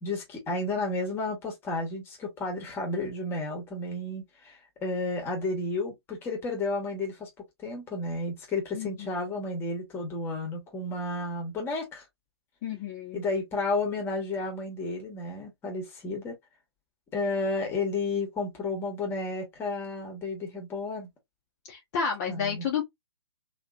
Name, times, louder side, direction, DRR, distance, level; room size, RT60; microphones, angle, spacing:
voice 1, 0.0-7.3 7.6-12.0 13.1-16.4 17.1-21.1 22.3-22.7, left 2 dB, 15° left, 1.3 m, -32 dB
voice 2, 8.7-9.3 12.6-13.2 21.7-22.9, left 7 dB, 35° left, 0.9 m, -31 dB
3.0 x 3.0 x 2.4 m
hypercardioid pair, 145°, 15 cm